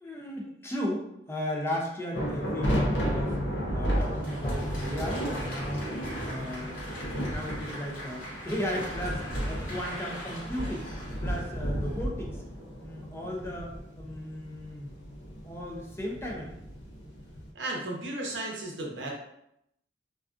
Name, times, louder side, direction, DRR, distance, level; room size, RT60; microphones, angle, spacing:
voice 1, 0.0-3.4 3.7-5.9 6.2-10.9 11.2-12.4 12.8-14.9 15.4-16.6, left 1 dB, 15° left, -2 dB, 0.4 m, -35 dB
sound 1, 2.1-17.5, equal, 70° left, 0.5 m, -33 dB
Applause, 3.9-12.0, equal, 55° left, 1.0 m, -42 dB
voice 2, 17.5-19.1, right 2 dB, 80° right, -2 dB, 0.6 m, -34 dB
2.4 x 2.3 x 2.3 m, 0.80 s
head